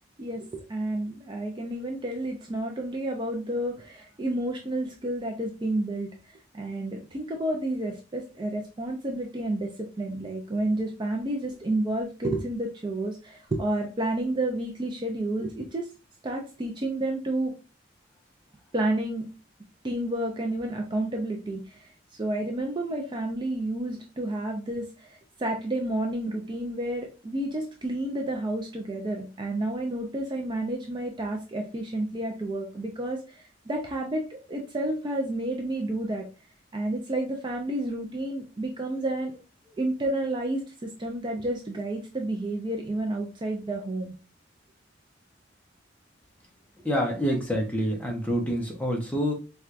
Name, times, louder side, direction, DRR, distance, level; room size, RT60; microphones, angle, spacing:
voice 1, 0.2-15.9 16.2-17.5 18.7-19.3 19.8-21.9 22.2-36.3 36.7-39.3 39.8-44.1, right 1 dB, 25° right, 2 dB, 0.4 m, -30 dB
voice 2, 46.8-49.3, equal, 10° left, 0 dB, 0.7 m, -27 dB
4.4 x 2.3 x 2.4 m, 0.33 s
head